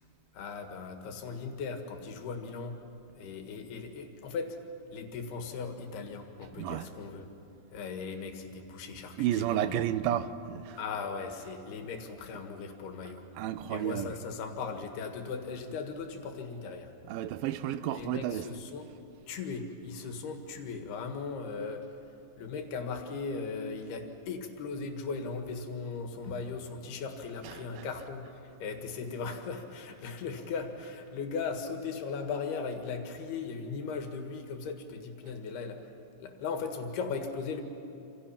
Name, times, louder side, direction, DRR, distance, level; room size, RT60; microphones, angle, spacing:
voice 1, 0.3-2.8 3.1-4.6 4.9-7.3 7.7-9.8 10.1-10.2 10.8-13.3 13.7-16.9 17.9-18.9 19.3-21.9 22.4-35.9 36.2-37.6, left 5 dB, 85° left, 3.8 m, -38 dB
voice 2, 6.6-6.9 9.2-10.8 13.4-14.1 17.1-18.5 27.4-27.9, right 11 dB, 75° right, 2.5 m, -32 dB
27.5 x 27.0 x 5.9 m
omnidirectional pair, 4.4 m